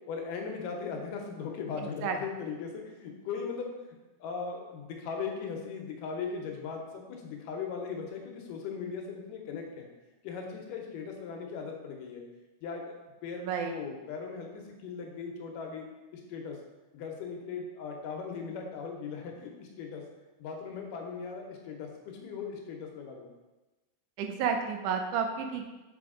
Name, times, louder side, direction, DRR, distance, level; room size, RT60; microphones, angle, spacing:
voice 1, 0.1-3.7 4.2-9.9 10.2-12.2 12.6-12.9 13.2-15.9 16.1-16.6 16.9-20.0 20.4-23.3, left 5 dB, 85° left, 2 dB, 2.5 m, -38 dB
voice 2, 13.4-13.8 24.2-25.7, right 6 dB, 80° right, 4 dB, 2.0 m, -31 dB
5.8 x 5.0 x 3.7 m, 1.1 s
omnidirectional pair, 3.7 m